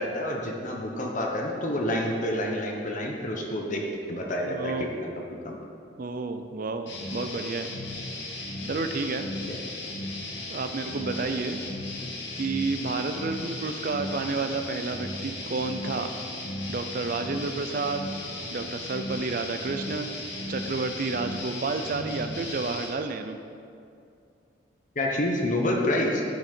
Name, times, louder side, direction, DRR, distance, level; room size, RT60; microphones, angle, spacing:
voice 1, 0.0-5.1 5.4-5.6 9.5-9.6 25.0-26.2, left 1 dB, 40° left, 0 dB, 0.9 m, -28 dB
voice 2, 4.4-4.9 6.0-7.7 8.7-9.3 10.5-11.6 12.4-16.1 16.7-18.1 18.5-20.2 20.5-23.4, right 3 dB, 50° right, 8 dB, 0.4 m, -30 dB
sound 1, 6.9-22.9, left 2 dB, 70° left, 1.5 m, -36 dB
10.5 x 5.6 x 4.4 m, 2.5 s
head